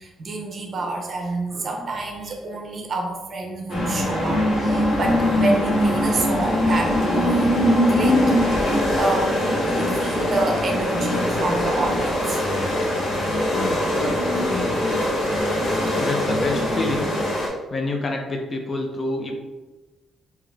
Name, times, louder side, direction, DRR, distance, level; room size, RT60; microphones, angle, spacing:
voice 1, 0.0-7.5 7.9-8.6 9.0-12.4 13.8-14.3, right 2 dB, 45° right, 2 dB, 0.8 m, -28 dB
sound 1, 3.7-17.5, left 1 dB, 65° left, 1.4 m, -22 dB
voice 2, 15.9-17.2 17.7-19.3, left 2 dB, 40° left, 3 dB, 0.7 m, -28 dB
3.7 x 3.0 x 3.5 m, 1.2 s
cardioid pair, 90°, 0 cm